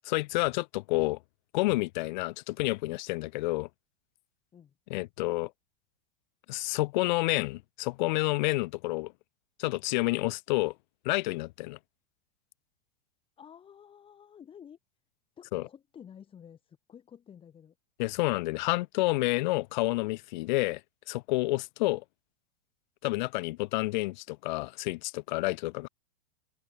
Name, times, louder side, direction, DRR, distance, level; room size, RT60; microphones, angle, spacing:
voice 1, 0.1-1.2 1.5-3.7 4.9-5.5 6.5-9.1 9.6-10.7 11.0-11.8 15.5-15.6 18.0-20.8 21.1-22.0 23.0-25.9, left 21 dB, 45° left, 0.9 m, -29 dB
voice 2, 13.4-14.8 15.4-17.7, left 8 dB, 15° left, 7.9 m, -51 dB
open air
supercardioid pair, 165°, 31 cm